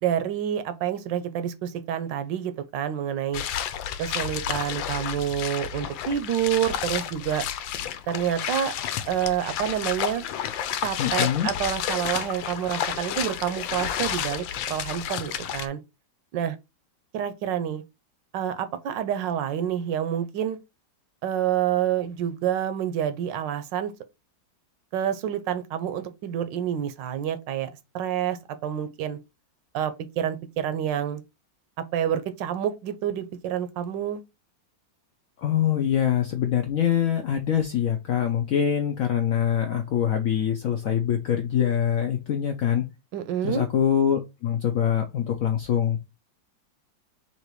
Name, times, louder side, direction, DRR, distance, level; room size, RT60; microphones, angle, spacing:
voice 1, 0.0-3.4 4.0-7.5 8.1-8.7 9.0-10.3 10.8-15.8 16.3-16.6 17.1-17.8 18.3-20.6 21.2-23.9 24.9-29.2 29.7-31.2 31.8-34.2 43.1-43.6, right 10 dB, 75° right, 1.3 m, -28 dB
sound 1, 3.3-15.7, left 10 dB, 85° left, 1.3 m, -31 dB
voice 2, 11.0-11.5 35.4-42.9 43.4-46.0, left 9 dB, 70° left, 0.8 m, -24 dB
4.0 x 2.9 x 4.6 m
omnidirectional pair, 2.0 m